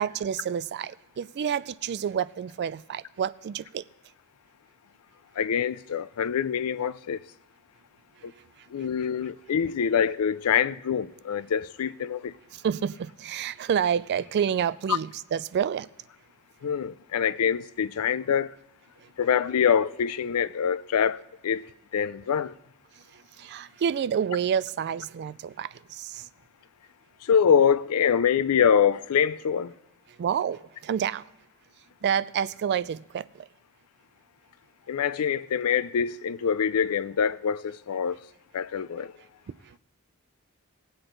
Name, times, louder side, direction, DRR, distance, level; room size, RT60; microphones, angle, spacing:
voice 1, 0.0-3.8 12.5-15.9 19.0-19.1 23.1-26.3 30.2-31.2 32.0-33.5 39.6-39.8, right 8 dB, 50° right, 0.3 m, -29 dB
voice 2, 5.4-7.3 8.2-8.3 8.7-12.3 16.6-18.6 19.2-22.5 27.2-29.7 34.9-38.2 38.5-39.1, left 7 dB, 75° left, 0.4 m, -25 dB
19.5 x 7.9 x 3.9 m
head